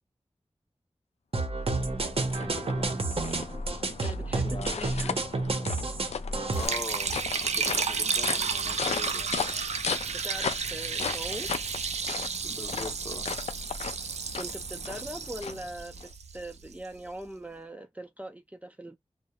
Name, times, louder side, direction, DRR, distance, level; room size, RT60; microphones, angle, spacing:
sound 1, 1.3-6.7, right 2 dB, 60° right, 0.7 m, -30 dB
sound 2, 1.6-16.1, left 6 dB, 75° left, 0.4 m, -37 dB
voice 1, 2.3-2.9 4.4-4.9 6.5-9.7 12.4-13.3, left 2 dB, 45° left, 0.7 m, -42 dB
voice 2, 4.0-5.2 10.1-11.5 14.4-19.0, right 1 dB, 15° right, 0.4 m, -41 dB
Liquid, 6.5-16.7, right 5 dB, 85° right, 0.4 m, -32 dB
2.3 x 2.0 x 2.7 m
cardioid pair, 45°, 11 cm